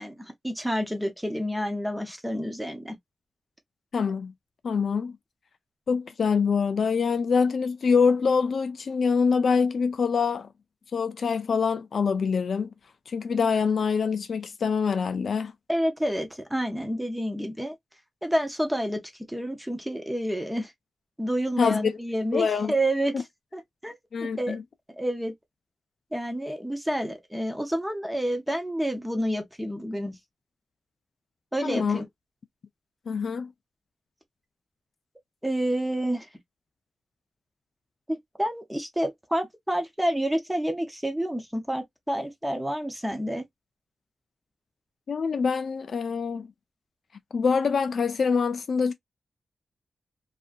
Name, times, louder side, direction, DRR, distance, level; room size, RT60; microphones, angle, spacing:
voice 1, 0.0-3.0 15.7-17.7 18.2-19.0 19.3-20.7 21.2-23.2 23.5-23.9 24.4-24.6 25.0-25.3 26.1-30.2 31.5-32.0 35.4-36.3 38.1-43.4, equal, 5° right, 0.6 m, -29 dB
voice 2, 3.9-4.3 4.6-5.2 5.9-10.5 10.9-12.7 13.1-15.5 21.6-22.0 22.3-22.7 23.1-23.2 24.1-24.6 31.6-32.0 33.1-33.5 45.1-46.5 47.3-48.9, left 5 dB, 55° left, 0.3 m, -25 dB
2.7 x 2.4 x 2.4 m
wide cardioid pair, 175°, 0 cm